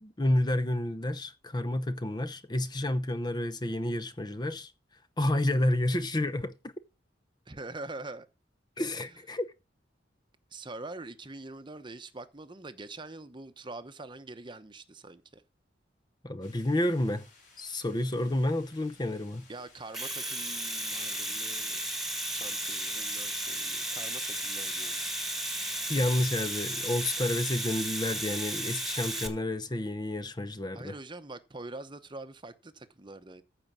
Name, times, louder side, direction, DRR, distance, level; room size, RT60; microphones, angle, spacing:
voice 1, 0.0-4.7 5.2-6.5 8.8-9.5 16.2-17.3 17.6-19.5 25.9-31.0, left 1 dB, 25° left, 0.7 m, -30 dB
voice 2, 7.5-8.3 10.5-15.4 19.5-21.8 22.3-25.0 30.7-33.4, right 2 dB, 25° right, 0.9 m, -44 dB
sound 1, 16.4-24.9, left 4 dB, 45° left, 7.1 m, -59 dB
Domestic sounds home sounds, 19.8-29.3, right 1 dB, ahead, 1.7 m, -34 dB
14.5 x 5.3 x 6.1 m
head